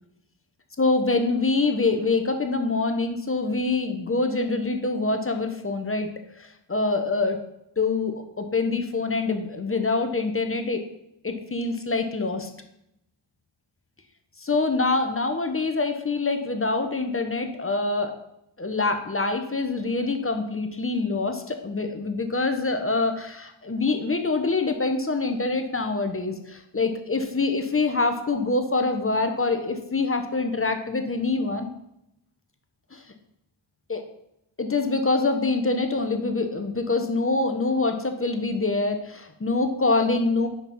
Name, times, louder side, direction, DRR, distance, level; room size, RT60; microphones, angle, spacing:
voice 1, 0.8-6.1 6.7-7.4 7.8-10.8 11.2-12.5 14.4-18.1 18.6-31.7 33.9-34.0 34.6-40.5, left 3 dB, 25° left, 6 dB, 0.9 m, -25 dB
5.4 x 4.9 x 5.7 m, 0.80 s
wide cardioid pair, 70°, 48 cm